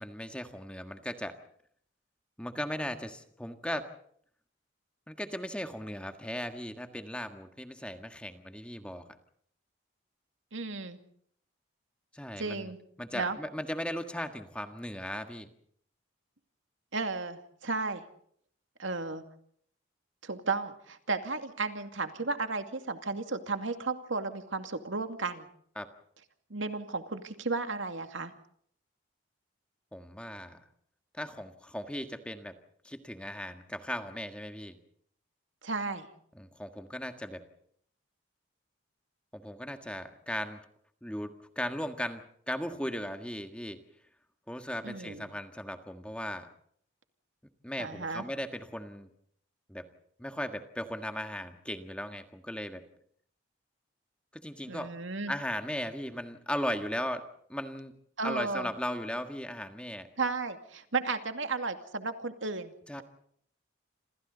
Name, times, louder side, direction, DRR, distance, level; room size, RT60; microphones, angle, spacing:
voice 1, 0.0-1.4 2.4-3.9 5.1-9.0 12.1-12.7 13.0-15.5 25.8-25.9 29.9-30.6 31.1-32.6 32.8-34.8 36.4-37.4 39.3-40.6 41.0-43.8 44.5-46.5 47.6-49.1 49.7-49.9 50.2-52.8 54.3-54.9 55.3-57.9 58.2-60.1 62.9-63.0, equal, 5° left, 6 dB, 1.6 m, -37 dB
voice 2, 10.5-11.0 12.4-12.8 13.1-13.4 16.9-18.0 18.8-19.2 20.2-25.5 26.5-28.3 35.6-36.1 44.8-45.2 47.8-48.2 54.7-55.3 58.2-58.7 60.2-63.0, right 3 dB, 75° right, 7 dB, 2.4 m, -34 dB
28.0 x 27.0 x 4.0 m, 0.65 s
head